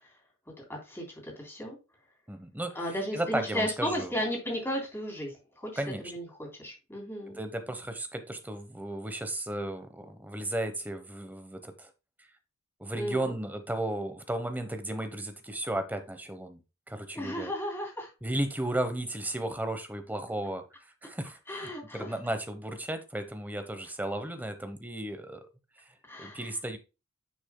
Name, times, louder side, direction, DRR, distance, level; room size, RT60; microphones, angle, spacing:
voice 1, 0.6-1.8 2.7-5.7 6.0-6.3 6.6-7.4 12.9-13.3 17.1-18.1 21.5-22.1 26.1-26.5, equal, 10° left, 3.3 m, -34 dB
voice 2, 2.3-2.8 3.1-4.2 5.8-6.1 7.4-11.9 12.2-12.3 12.8-16.6 16.9-17.5 18.2-25.4 26.2-26.8, right 1 dB, 10° right, 0.9 m, -34 dB
10.0 x 6.1 x 2.2 m
head